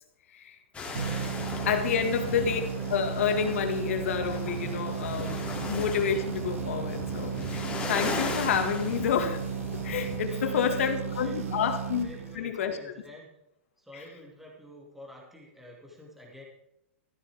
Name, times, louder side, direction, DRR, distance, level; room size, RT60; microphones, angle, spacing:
sound 1, 0.7-10.2, left 3 dB, 15° left, 2.8 m, -37 dB
voice 1, 0.7-2.0 10.2-11.7 12.0-13.3 13.8-16.4, left 2 dB, 5° right, -3 dB, 2.5 m, -47 dB
sound 2, 0.9-12.7, right 8 dB, 90° right, 1.7 m, -35 dB
voice 2, 1.7-2.6 2.9-5.4 5.7-9.4 9.8-12.1 12.3-12.8 13.9-14.0, left 7 dB, 75° left, 6 dB, 1.9 m, -29 dB
14.0 x 12.0 x 3.6 m, 0.83 s
hypercardioid pair, 135°, 7 cm